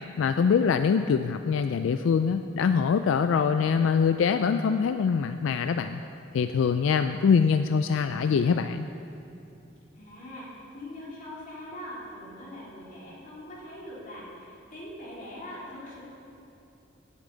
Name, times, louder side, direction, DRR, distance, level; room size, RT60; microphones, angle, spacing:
voice 1, 0.2-6.0 6.3-8.9, left 6 dB, 85° left, 9 dB, 0.3 m, -24 dB
voice 2, 9.9-16.0, left 1 dB, 45° left, -6 dB, 3.1 m, -42 dB
17.5 x 8.3 x 3.9 m, 2.8 s
head